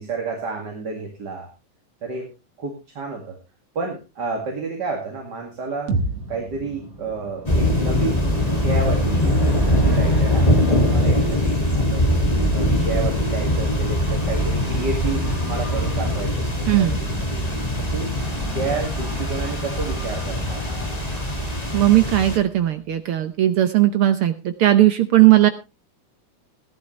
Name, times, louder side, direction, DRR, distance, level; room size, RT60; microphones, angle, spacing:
voice 1, 0.0-1.5 2.0-2.3 2.6-3.4 3.7-5.9 6.3-12.0 12.5-17.4 17.8-18.1 18.5-20.6, right 4 dB, 35° right, 1 dB, 2.6 m, -30 dB
sound 1, 5.5-23.3 23.7-23.8, left 1 dB, ahead, 6.7 m, -41 dB
sound 2, 5.9-9.9, right 2 dB, 55° right, 2.5 m, -32 dB
sound 3, 7.5-22.4, left 1 dB, 15° left, 1.8 m, -22 dB
voice 2, 16.7-17.0 21.7-25.5, right 14 dB, 75° right, 9 dB, 1.2 m, -17 dB
16.5 x 11.5 x 3.2 m, 0.28 s
omnidirectional pair, 3.5 m